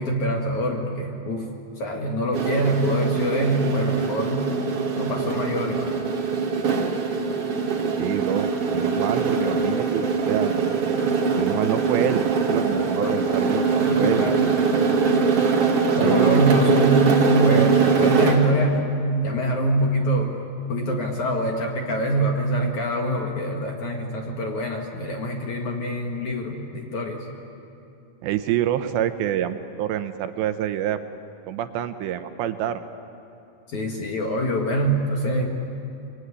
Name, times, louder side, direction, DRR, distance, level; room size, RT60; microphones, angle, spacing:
voice 1, 0.0-4.5 5.0-6.0 13.0-13.2 13.8-14.4 15.9-18.9 19.2-20.4 20.7-27.3 33.7-35.5, right 1 dB, 55° left, 1 dB, 2.4 m, -24 dB
sound 1, 2.3-18.5, right 5 dB, 45° right, 2.1 m, -22 dB
voice 2, 8.0-10.6 11.3-12.2 12.5-14.2 15.9-16.4 28.2-31.0 31.5-32.8, right 11 dB, 80° right, 9 dB, 2.9 m, -27 dB
24.5 x 23.0 x 9.7 m, 2.7 s
omnidirectional pair, 5.3 m